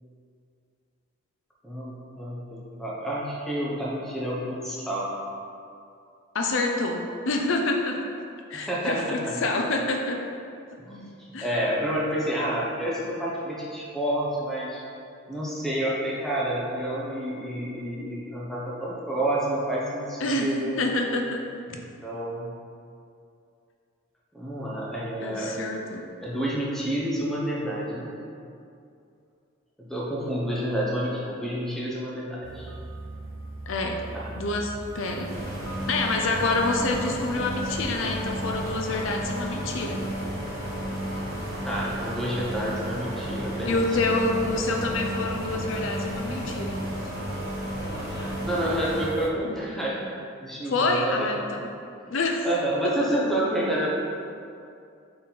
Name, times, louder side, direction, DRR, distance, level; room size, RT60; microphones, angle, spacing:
voice 1, 1.6-5.1 8.5-9.4 10.8-14.8 15.3-20.9 21.7-22.5 24.3-25.5 26.2-28.1 29.8-32.7 34.1-34.3 41.6-44.0 48.4-51.3 52.4-53.9, right 1 dB, ahead, -6 dB, 0.9 m, -29 dB
voice 2, 6.3-8.0 8.5-10.2 11.3-11.5 20.2-20.5 20.8-21.4 25.2-26.1 33.7-34.0 34.4-35.3 35.9-40.0 43.6-46.8 50.7-51.7 52.1-52.5 52.8-52.9, left 2 dB, 65° left, 2 dB, 0.5 m, -27 dB
sound 1, 32.4-49.3, right 2 dB, 70° right, 0.6 m, -38 dB
sound 2, 35.3-49.1, equal, 50° left, 1.2 m, -33 dB
6.4 x 4.0 x 4.1 m, 2.5 s
head